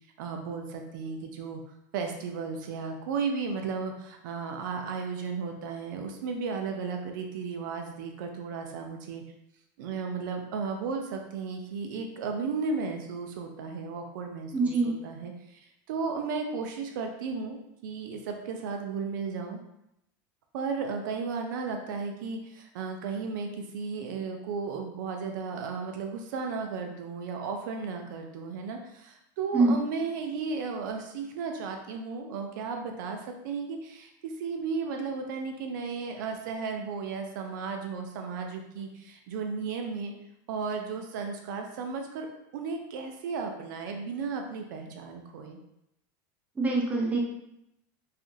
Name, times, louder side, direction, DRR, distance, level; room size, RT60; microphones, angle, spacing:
voice 1, 0.2-1.6 1.9-9.2 9.8-15.6 15.9-19.6 20.5-33.2 33.4-40.1 40.5-42.3 42.5-45.6, right 5 dB, 80° right, 4 dB, 0.4 m, -34 dB
voice 2, 14.5-15.0 29.5-29.8 46.6-47.2, right 3 dB, 15° right, -2 dB, 0.6 m, -24 dB
2.8 x 2.4 x 2.6 m, 0.82 s
supercardioid pair, 130°, 10 cm